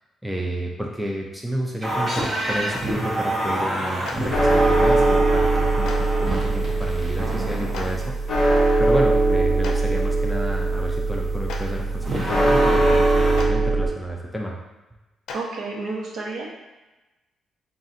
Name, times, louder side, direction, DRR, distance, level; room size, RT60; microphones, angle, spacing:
voice 1, 0.2-8.1 8.8-14.6, right 1 dB, ahead, -2 dB, 0.4 m, -30 dB
sound 1, 1.8-8.1 12.0-13.4, right 1 dB, 25° right, 0.7 m, -27 dB
Clapping, 2.1-2.2 4.0-4.1 5.8-6.0 7.7-7.8 9.6-9.7 11.4-11.6 13.3-13.5 15.3-15.4, left 4 dB, 70° left, 0.5 m, -33 dB
sound 2, 4.3-13.9, right 2 dB, 30° left, 0.8 m, -21 dB
voice 2, 15.3-16.5, right 3 dB, 65° right, -3 dB, 0.9 m, -30 dB
3.7 x 2.4 x 4.1 m, 1.1 s
cardioid pair, 175°, 0 cm